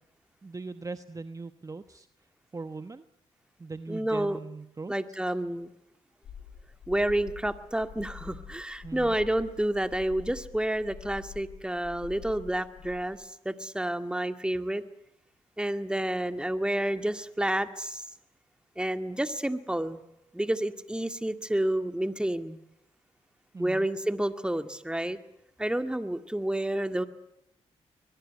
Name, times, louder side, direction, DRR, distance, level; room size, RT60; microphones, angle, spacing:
voice 1, 0.4-2.1 2.5-3.0 3.6-4.9 8.8-9.1 23.5-23.9, right 3 dB, 30° right, 11 dB, 1.2 m, -40 dB
voice 2, 3.9-4.4 4.9-5.7 6.9-14.8 15.6-18.0 18.8-20.0 20.3-22.6 23.6-25.2 25.6-27.1, right 1 dB, 5° right, 9 dB, 2.1 m, -29 dB
sound 1, 6.2-13.0, left 7 dB, 80° left, 7.1 m, -46 dB
22.5 x 21.5 x 9.5 m, 0.81 s
cardioid pair, 65°, 12 cm